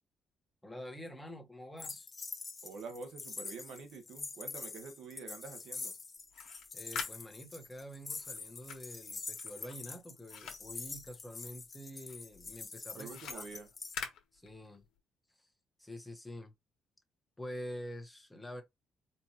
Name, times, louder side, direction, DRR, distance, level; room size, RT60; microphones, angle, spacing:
voice 1, 0.6-2.1 6.7-13.5 14.3-14.8 15.4-15.5 15.8-16.5 17.4-18.6, equal, 10° left, 1.1 m, -47 dB
sound 1, 1.8-14.0, left 4 dB, 30° left, 0.7 m, -45 dB
voice 2, 2.6-5.9 12.9-13.7, right 4 dB, 80° right, 1.2 m, -47 dB
sound 2, 6.2-11.7 12.0-15.0, left 7 dB, 80° left, 1.2 m, -47 dB
4.4 x 2.6 x 2.9 m
cardioid pair, 90°, 0 cm